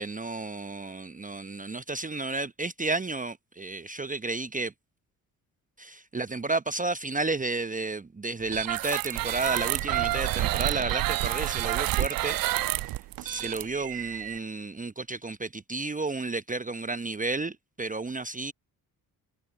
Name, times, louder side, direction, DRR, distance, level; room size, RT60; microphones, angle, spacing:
voice 1, 0.0-4.7 5.8-12.4 12.7-18.5, right 3 dB, 20° right, 1.0 m, -32 dB
sound 1, 8.5-14.4, right 17 dB, 55° right, 0.5 m, -29 dB
hypercardioid pair, 45°, 42 cm